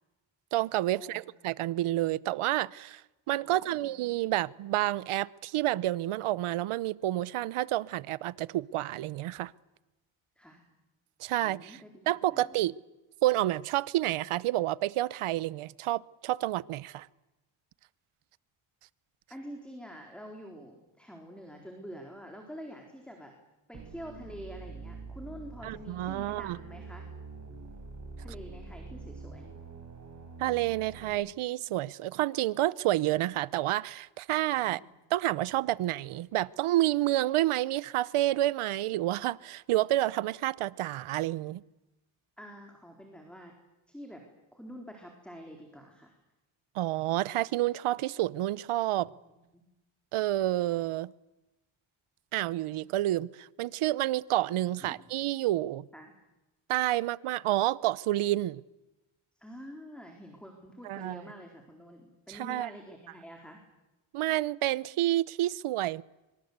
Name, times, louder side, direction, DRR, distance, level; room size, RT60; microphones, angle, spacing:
voice 1, 0.5-3.0 3.3-9.5 11.2-11.8 12.1-12.8 13.2-17.1 25.6-26.6 30.4-34.8 35.1-41.6 46.7-49.1 50.1-51.1 52.3-55.9 56.7-58.6 60.8-61.2 62.3-62.7 64.1-66.0, right 15 dB, 85° right, 0.9 m, -29 dB
voice 2, 3.4-4.0 10.4-10.6 11.4-12.6 19.3-23.3 23.7-27.1 28.2-29.5 34.5-34.9 42.4-43.5 43.9-44.2 44.5-46.2 49.2-49.6 54.8-55.0 55.9-56.1 59.4-63.6, equal, ahead, 4.0 m, -47 dB
sound 1, 23.7-31.1, right 4 dB, 35° right, 5.8 m, -45 dB
25.5 x 24.5 x 8.1 m
cardioid pair, 100°, 49 cm